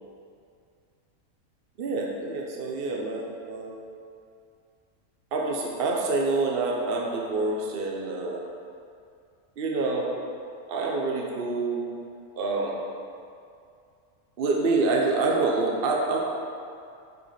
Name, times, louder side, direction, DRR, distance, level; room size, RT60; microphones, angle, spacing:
voice 1, 1.8-3.8 5.3-8.4 9.6-10.1 10.7-11.9 12.4-12.8 14.4-16.2, right 3 dB, 50° right, -2 dB, 1.0 m, -27 dB
7.8 x 4.8 x 5.0 m, 2.4 s
omnidirectional pair, 1.4 m